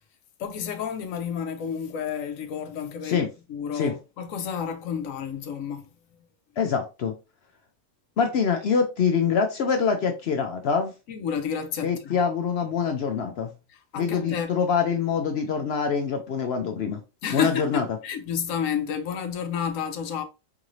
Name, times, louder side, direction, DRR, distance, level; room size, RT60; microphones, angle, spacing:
voice 1, 0.4-3.2 3.5-5.9 11.1-12.2 13.7-14.6 17.2-20.2, left 7 dB, 90° left, 1.1 m, -30 dB
voice 2, 6.6-7.1 8.2-10.9 11.8-13.5 13.9-17.0 17.3-17.8, left 6 dB, 60° left, 0.8 m, -25 dB
4.7 x 2.6 x 3.0 m
omnidirectional pair, 1.3 m